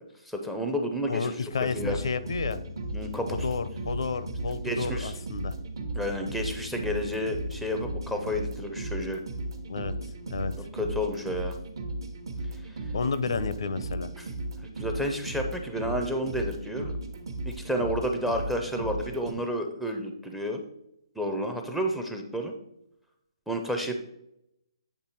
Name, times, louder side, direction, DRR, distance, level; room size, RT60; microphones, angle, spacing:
voice 1, 0.3-1.3 1.7-2.0 2.9-3.4 4.5-5.1 6.0-9.2 10.7-11.6 12.6-12.8 14.2-14.3 14.8-16.9 17.5-20.6 21.2-22.5 23.5-24.0, equal, ahead, 4 dB, 0.5 m, -31 dB
voice 2, 1.1-2.6 3.3-5.5 9.7-9.9 10.3-10.5 12.9-14.1, left 4 dB, 70° left, 14 dB, 0.5 m, -31 dB
sound 1, 1.5-19.3, right 1 dB, 55° right, 1.0 m, -36 dB
8.1 x 3.4 x 4.4 m, 0.81 s
hypercardioid pair, 165°, 3 cm